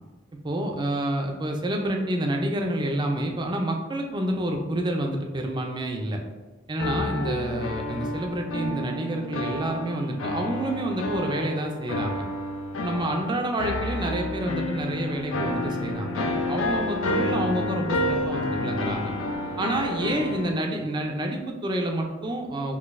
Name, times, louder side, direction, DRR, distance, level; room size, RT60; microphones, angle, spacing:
voice 1, 0.4-6.2 6.7-12.3 12.8-19.1 19.6-22.8, right 1 dB, 20° right, 2 dB, 0.3 m, -28 dB
sound 1, 6.8-20.5, left 1 dB, 70° left, 0.4 m, -30 dB
3.8 x 2.5 x 2.5 m, 1.3 s
head